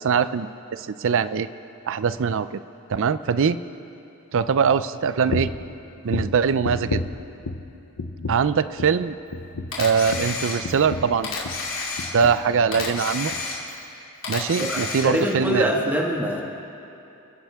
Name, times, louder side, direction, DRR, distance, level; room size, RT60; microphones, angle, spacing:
voice 1, 0.0-1.5 1.9-2.6 2.9-3.6 4.3-5.5 6.0-7.0 8.3-9.1 9.8-11.4 12.1-13.3 14.3-15.9, right 6 dB, 60° right, 14 dB, 0.5 m, -22 dB
sound 1, 5.3-5.7 6.1-7.7 8.0-8.5 8.8-9.0 9.3-11.7 12.0-12.5 12.8-13.0 13.3-13.4, left 3 dB, 85° left, 0.8 m, -31 dB
Camera, 9.7-10.9 11.2-12.4 12.7-13.9 14.2-15.3, left 4 dB, 60° left, 2.9 m, -30 dB
voice 2, 14.6-16.4, equal, 10° right, -1 dB, 1.6 m, -24 dB
28.5 x 10.0 x 3.5 m, 2.9 s
head